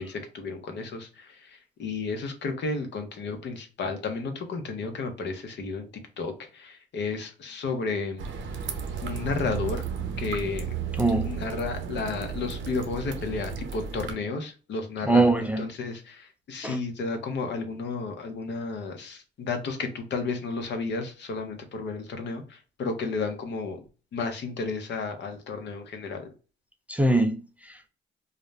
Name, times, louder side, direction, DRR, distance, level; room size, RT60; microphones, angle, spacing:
voice 1, 0.0-8.3 9.0-9.8 10.2-10.8 11.2-23.8 24.1-26.3, left 4 dB, 60° left, 0.7 m, -32 dB
sound 1, 8.2-14.2, right 6 dB, 70° right, 0.7 m, -33 dB
voice 2, 11.0-11.3 15.1-15.6 16.6-16.8 26.9-27.9, right 2 dB, 5° right, 0.3 m, -23 dB
2.4 x 2.1 x 3.1 m
cardioid pair, 90°, 20 cm